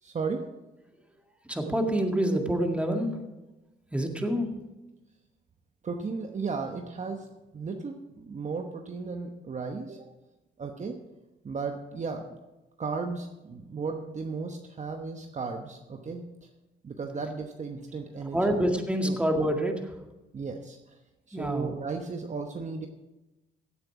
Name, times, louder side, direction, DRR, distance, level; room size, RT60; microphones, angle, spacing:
voice 1, 0.0-0.5 5.8-7.3 7.5-10.1 10.6-11.0 11.4-12.4 12.8-16.2 16.8-18.6 19.0-19.2 20.3-21.0 21.3-22.9, right 4 dB, 35° right, 4 dB, 1.1 m, -35 dB
voice 2, 1.5-3.2 3.9-4.5 18.3-19.9 21.3-21.7, right 1 dB, 5° right, 3 dB, 2.0 m, -27 dB
16.5 x 8.1 x 4.8 m, 1.1 s
cardioid pair, 90°, 20 cm